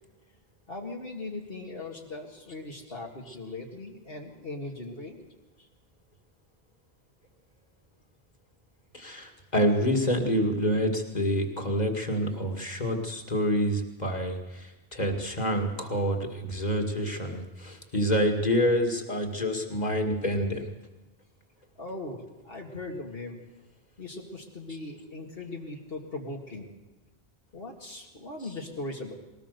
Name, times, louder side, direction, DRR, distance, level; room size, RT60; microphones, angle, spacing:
voice 1, 0.7-5.2 5.6-5.7 21.8-23.4 24.0-26.7 27.5-29.1, left 2 dB, 65° left, -1 dB, 2.2 m, -39 dB
voice 2, 8.9-20.7, equal, 45° left, 4 dB, 2.4 m, -27 dB
21.0 x 18.5 x 6.8 m, 1.1 s
omnidirectional pair, 1.0 m